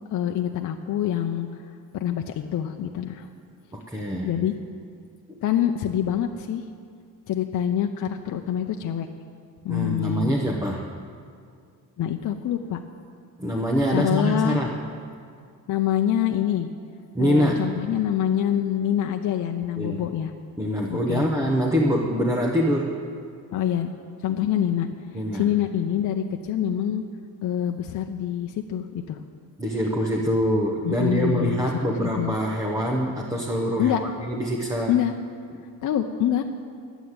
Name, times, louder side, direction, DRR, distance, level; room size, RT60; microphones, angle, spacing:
voice 1, 0.1-1.6 1.9-3.3 4.2-4.5 5.4-6.6 7.3-9.1 9.6-10.3 12.0-12.8 13.9-14.6 15.7-16.7 17.2-20.3 20.9-21.3 23.5-23.9 24.2-24.9 25.3-27.1 27.4-29.2 30.8-32.3 33.8-34.0 34.9-35.1 35.8-36.4, left 10 dB, 60° left, 4 dB, 0.6 m, -25 dB
voice 2, 3.7-4.3 5.3-5.4 9.7-10.9 13.4-14.8 17.1-17.7 19.8-20.0 20.6-23.0 25.1-25.5 29.6-35.0, equal, 10° right, -1 dB, 0.7 m, -24 dB
11.0 x 8.1 x 8.8 m, 2.3 s
wide cardioid pair, 170°, 34 cm